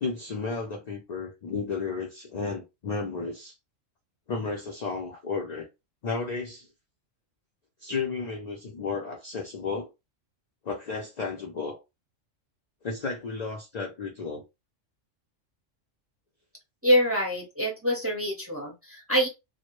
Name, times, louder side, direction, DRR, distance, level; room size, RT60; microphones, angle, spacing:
voice 1, 0.0-3.6 4.3-5.7 6.0-6.7 7.8-9.9 10.6-11.8 12.8-14.4, left 4 dB, 75° left, 0.3 m, -33 dB
voice 2, 16.8-19.3, equal, 15° right, 0.5 m, -25 dB
2.1 x 2.0 x 2.9 m
omnidirectional pair, 1.3 m